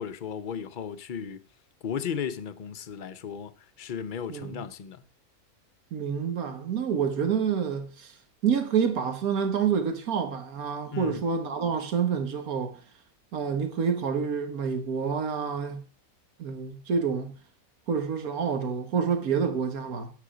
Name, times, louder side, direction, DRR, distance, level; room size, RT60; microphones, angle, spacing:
voice 1, 0.0-1.4 1.8-3.5 3.8-5.0 10.9-11.2, left 7 dB, 45° left, 0.7 m, -35 dB
voice 2, 4.3-4.6 5.9-8.1 8.4-12.8 13.3-15.8 16.4-17.3 17.9-20.1, right 6 dB, 80° right, 1.7 m, -28 dB
10.0 x 8.1 x 5.0 m
omnidirectional pair, 1.5 m